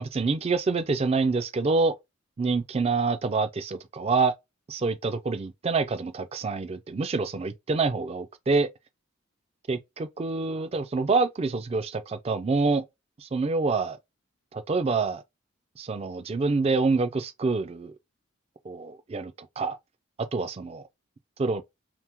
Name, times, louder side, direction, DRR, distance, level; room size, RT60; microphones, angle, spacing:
voice 1, 0.0-1.9 2.4-4.3 4.7-8.7 9.7-12.8 13.2-14.0 14.5-15.2 15.8-17.9 18.6-19.8 20.3-20.8 21.4-21.6, right 4 dB, 30° right, 0.3 m, -26 dB
2.9 x 2.0 x 3.4 m
head